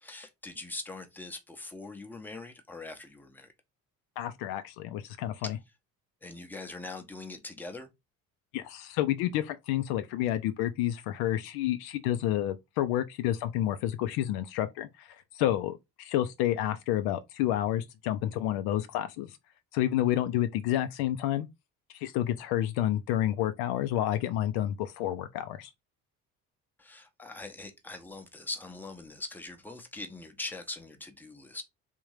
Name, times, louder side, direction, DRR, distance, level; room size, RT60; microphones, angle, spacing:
voice 1, 0.0-3.5 5.4-5.5 6.2-7.9 26.8-31.6, left 2 dB, 5° left, 0.8 m, -42 dB
voice 2, 4.2-5.6 8.5-15.1 15.3-19.3 19.7-21.5 21.9-25.7, left 12 dB, 55° left, 0.5 m, -29 dB
3.4 x 2.6 x 3.2 m
figure-of-eight pair, 50°, 45 cm